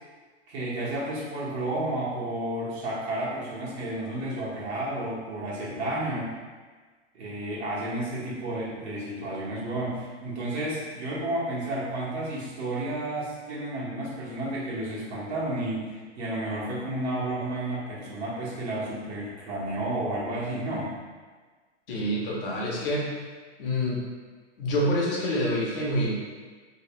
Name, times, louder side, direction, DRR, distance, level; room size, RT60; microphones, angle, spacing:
voice 1, 0.5-6.3 7.1-20.9, right 1 dB, 60° right, -7 dB, 1.4 m, -31 dB
voice 2, 21.9-23.1 23.6-24.0 24.6-26.2, equal, 50° left, -4 dB, 1.0 m, -27 dB
3.1 x 3.1 x 3.1 m, 1.4 s
supercardioid pair, 165°, 37 cm